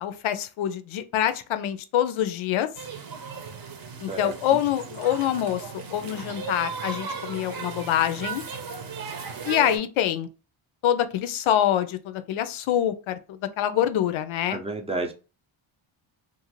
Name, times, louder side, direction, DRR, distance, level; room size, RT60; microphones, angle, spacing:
voice 1, 0.0-2.7 4.0-8.4 9.4-10.3 10.8-14.6, left 11 dB, 75° left, 0.5 m, -25 dB
sound 1, 2.7-9.8, right 5 dB, 45° right, 0.8 m, -36 dB
voice 2, 14.5-15.1, right 3 dB, 15° right, 0.5 m, -30 dB
2.5 x 2.5 x 3.0 m
cardioid pair, 95°, 49 cm